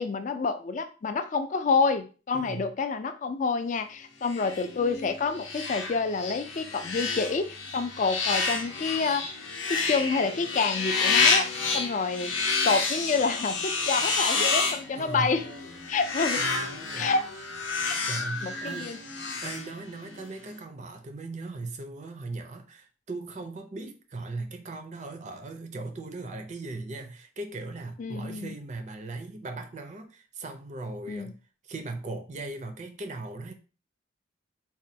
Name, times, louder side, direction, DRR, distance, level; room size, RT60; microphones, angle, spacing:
voice 1, 0.0-12.3 12.6-15.5 15.9-16.4 17.0-17.2 17.8-18.0 18.4-19.0 28.0-28.5 31.1-31.3, left 4 dB, 40° left, 0.3 m, -28 dB
voice 2, 2.3-2.7 14.9-15.4 16.4-17.1 18.0-18.9 19.4-31.4 31.6-33.5, right 3 dB, 40° right, 0.4 m, -38 dB
sound 1, 4.2-20.2, left 4 dB, 80° left, 0.6 m, -29 dB
4.1 x 2.2 x 2.6 m
head